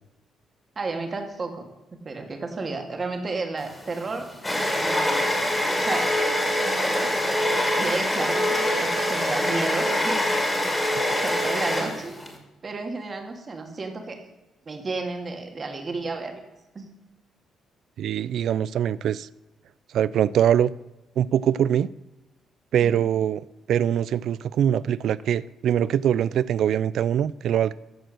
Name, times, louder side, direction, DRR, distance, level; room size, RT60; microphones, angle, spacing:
voice 1, 0.8-1.7 2.0-4.3 4.8-5.5 5.8-6.1 6.9-7.0 7.7-10.3 10.5-10.6 11.2-12.1 12.6-14.2 14.7-16.3 16.8-16.9 22.8-23.0, right 3 dB, 35° right, 4 dB, 1.9 m, -32 dB
sound 1, 3.6-12.3, left 1 dB, 10° left, 2.4 m, -24 dB
voice 2, 18.0-19.3 19.9-20.7 21.2-21.9 22.7-27.7, right 9 dB, 70° right, 19 dB, 0.3 m, -23 dB
13.5 x 4.6 x 6.4 m, 1.0 s
cardioid pair, 90°, 0 cm